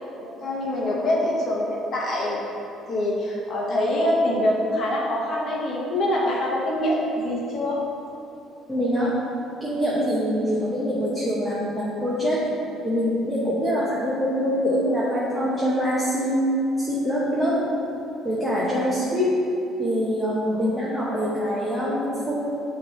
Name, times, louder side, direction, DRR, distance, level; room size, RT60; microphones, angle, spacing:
voice 1, 0.2-2.4 2.9-7.8 10.0-10.1 17.3-17.5, left 1 dB, 40° left, -3 dB, 1.1 m, -25 dB
voice 2, 8.7-9.1 9.6-12.4 12.8-16.4 16.8-17.6 18.2-19.3 19.8-22.3, equal, 5° right, -8 dB, 0.9 m, -24 dB
9.1 x 3.2 x 4.2 m, 2.9 s
cardioid pair, 155°, 0 cm